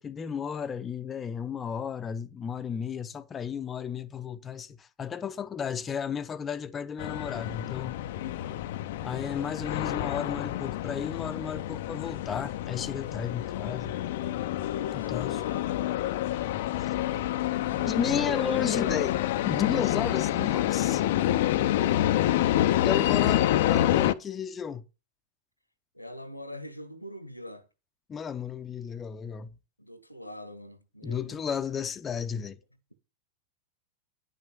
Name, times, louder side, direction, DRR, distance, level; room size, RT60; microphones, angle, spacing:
voice 1, 0.0-8.0 9.0-14.0 14.9-15.4 16.9-17.0 17.9-19.2 19.4-21.0 22.8-24.8 28.1-29.5 31.0-32.6, left 7 dB, 20° left, 0.7 m, -33 dB
sound 1, 7.0-24.1, left 13 dB, 55° left, 0.6 m, -28 dB
voice 2, 15.0-15.8 17.0-19.0 21.0-21.9 25.9-27.7 29.8-31.4, equal, 90° left, 1.3 m, -43 dB
10.0 x 6.2 x 6.6 m
figure-of-eight pair, 90°, 0 cm